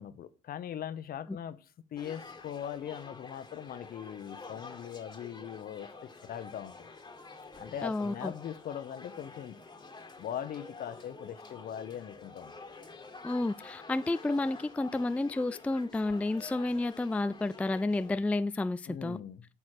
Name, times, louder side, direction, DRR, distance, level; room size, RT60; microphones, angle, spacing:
voice 1, 0.0-5.9 6.2-6.9 7.6-9.6 10.2-12.6 18.9-19.4, left 9 dB, 55° left, 0.9 m, -40 dB
sound 1, 1.9-18.1, left 3 dB, 25° left, 1.7 m, -49 dB
voice 2, 7.8-8.3 13.2-19.2, left 2 dB, 10° left, 0.3 m, -31 dB
9.9 x 6.0 x 4.9 m
hypercardioid pair, 60°, 18 cm